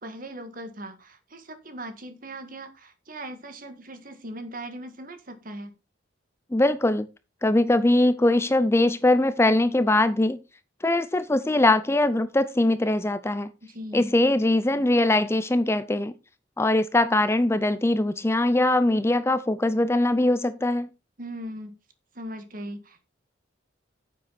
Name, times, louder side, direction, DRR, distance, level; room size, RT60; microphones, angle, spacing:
voice 1, 0.0-5.7 13.6-14.1 21.2-21.8 22.1-23.0, right 1 dB, 45° right, 9 dB, 1.7 m, -39 dB
voice 2, 6.5-7.1 7.4-10.4 10.8-13.5 13.9-16.1 16.6-20.9, left 1 dB, 15° left, 13 dB, 0.5 m, -21 dB
9.4 x 7.8 x 4.1 m, 0.28 s
head